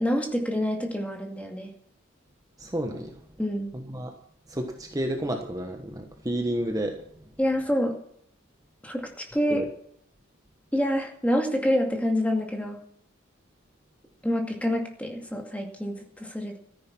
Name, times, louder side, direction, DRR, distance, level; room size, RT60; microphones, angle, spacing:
voice 1, 0.0-1.7 3.4-3.7 7.4-8.0 8.8-9.7 10.7-12.8 14.2-16.6, equal, 5° left, 3 dB, 2.3 m, -27 dB
voice 2, 2.6-3.2 3.9-4.1 4.5-7.0 9.5-9.7, right 1 dB, 15° right, 4 dB, 1.3 m, -30 dB
14.0 x 10.5 x 6.0 m, 0.69 s
head